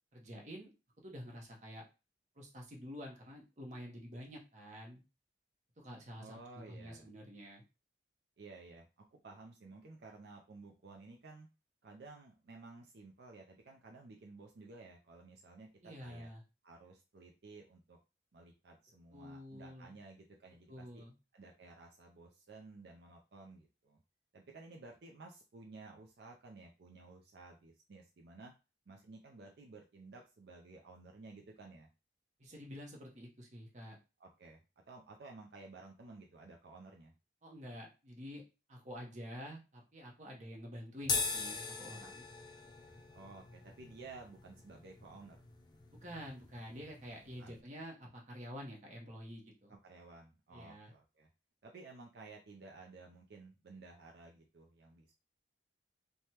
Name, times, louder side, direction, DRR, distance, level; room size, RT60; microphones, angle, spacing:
voice 1, 0.1-0.7 1.0-1.8 2.4-5.0 5.8-7.6 15.8-16.4 19.1-19.9 20.7-21.1 32.4-34.0 37.4-38.4 38.7-42.3 46.0-49.7 50.5-50.9, equal, 40° right, -1 dB, 0.9 m, -48 dB
voice 2, 6.2-7.1 8.4-11.5 11.8-16.3 16.6-18.0 18.3-21.0 21.3-24.0 24.3-28.5 28.9-31.9 34.2-37.1 43.1-45.4 47.4-47.6 49.7-51.3 51.6-55.1, right 3 dB, 60° right, 1 dB, 0.5 m, -54 dB
sound 1, 41.0-47.6, left 4 dB, 25° left, 0.3 m, -42 dB
3.3 x 2.2 x 2.8 m, 0.29 s
head